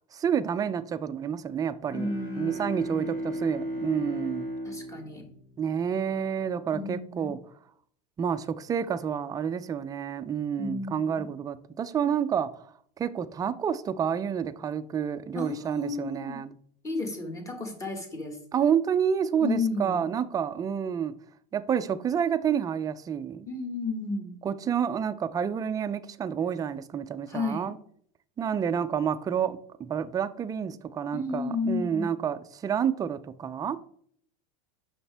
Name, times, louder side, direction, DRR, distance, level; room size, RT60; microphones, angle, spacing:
voice 1, 0.1-2.1 2.4-4.5 5.6-7.4 8.2-12.6 13.0-16.5 18.5-21.1 21.5-23.5 24.4-27.8 28.4-33.8, right 8 dB, 15° right, 0.4 m, -29 dB
Bowed string instrument, 1.8-6.1, equal, 50° left, 3.2 m, -35 dB
voice 2, 1.9-3.1 4.6-5.2 6.7-7.3 10.6-11.3 15.3-16.4 16.8-18.4 19.4-20.1 23.5-24.4 27.3-27.7 31.1-32.1, left 3 dB, 15° left, 1.5 m, -33 dB
6.8 x 5.9 x 3.4 m
supercardioid pair, 130°, 21 cm